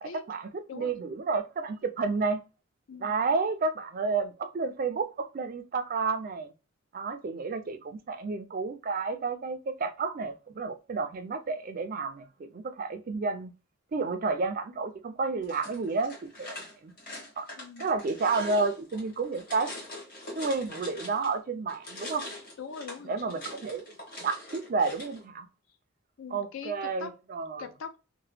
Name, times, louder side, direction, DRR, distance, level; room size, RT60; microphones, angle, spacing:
voice 1, 0.0-2.4 3.0-6.5 6.9-13.5 13.9-16.9 17.4-17.5 17.8-19.7 20.4-22.3 23.0-23.8 24.2-25.5 26.3-27.7, right 4 dB, 40° right, 0.3 m, -31 dB
sound 1, 15.4-21.4 21.7-25.2, left 1 dB, 40° left, 1.5 m, -43 dB
voice 2, 17.6-17.9 22.6-23.4 26.2-27.1 27.6-28.0, left 5 dB, 70° left, 0.5 m, -42 dB
2.8 x 2.1 x 3.2 m
head